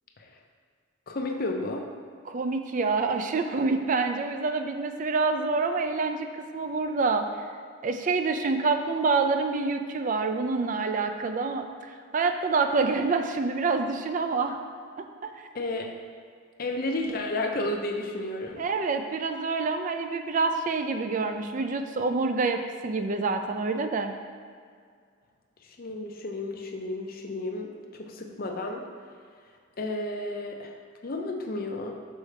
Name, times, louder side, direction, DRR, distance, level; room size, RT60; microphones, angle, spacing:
voice 1, 1.1-1.8 15.5-15.9 16.6-18.7 25.6-27.7 28.0-28.8 29.8-30.7 31.0-31.9, left 2 dB, 45° left, 2 dB, 0.5 m, -32 dB
voice 2, 2.3-7.3 7.8-11.6 12.1-14.6 15.2-15.3 18.6-24.1, right 4 dB, 40° right, 6 dB, 0.3 m, -27 dB
6.3 x 4.7 x 3.2 m, 2.1 s
head